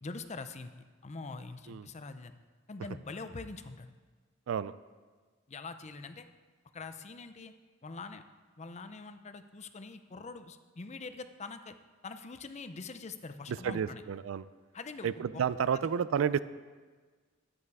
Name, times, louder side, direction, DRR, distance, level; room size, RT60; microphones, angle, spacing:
voice 1, 0.0-0.7 1.0-2.3 2.7-3.9 5.5-6.3 6.7-7.5 7.8-8.2 8.6-11.8 12.0-14.0 14.7-15.4 16.0-16.1, left 3 dB, 35° left, 9 dB, 0.6 m, -44 dB
voice 2, 13.5-14.4 15.0-16.4, right 7 dB, 90° right, 16 dB, 0.4 m, -31 dB
11.0 x 8.9 x 4.7 m, 1.4 s
head